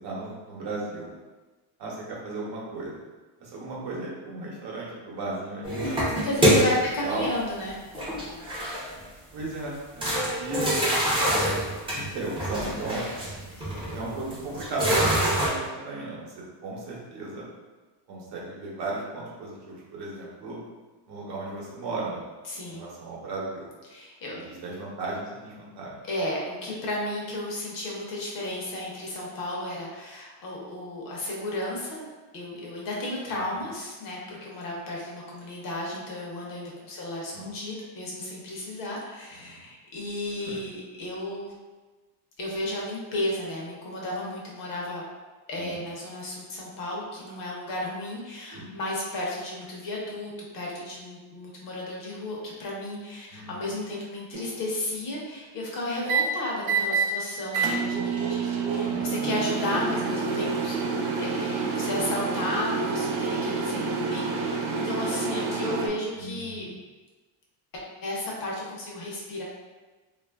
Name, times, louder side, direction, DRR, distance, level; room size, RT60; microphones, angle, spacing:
voice 1, 0.0-1.1 1.8-2.9 3.4-6.0 6.3-6.7 7.0-7.3 9.3-10.7 11.0-11.2 11.9-13.1 13.9-16.2 16.6-17.4 18.1-20.6 21.1-22.2 22.7-23.7 24.3-26.0 33.3-33.4 37.3-37.5 39.4-39.6 40.5-40.6 45.5-45.7 48.5-48.7 53.3-53.5 58.9-59.1 66.1-66.7, right 2 dB, 55° right, -4 dB, 0.9 m, -35 dB
sound 1, 5.6-7.0 7.9-9.0 9.4-9.5 10.0-15.5, equal, 10° right, 0.5 m, -25 dB
voice 2, 6.1-7.8 13.6-13.9 22.4-22.8 23.9-24.4 26.0-32.1 32.3-41.5 42.4-45.0 45.5-60.8 61.2-66.7 67.7-69.4, left 1 dB, 45° left, -3 dB, 0.7 m, -33 dB
sound 2, 54.3-54.7 56.1-56.2 56.6-57.1 57.5-65.9, right 5 dB, 75° right, 0.6 m, -28 dB
3.0 x 2.4 x 2.2 m, 1.2 s
cardioid pair, 140°, 48 cm